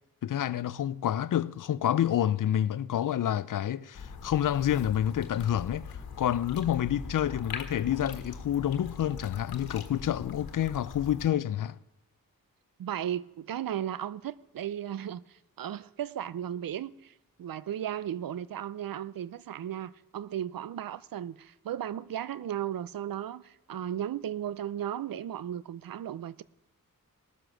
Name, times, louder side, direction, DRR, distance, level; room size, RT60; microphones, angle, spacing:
voice 1, 0.2-5.9 6.2-11.8, left 11 dB, 60° left, 0.5 m, -28 dB
sound 1, 3.9-11.3, left 5 dB, 85° left, 1.4 m, -42 dB
voice 2, 12.8-26.4, right 10 dB, 70° right, 0.6 m, -35 dB
19.5 x 7.6 x 6.3 m
cardioid pair, 65°, 35 cm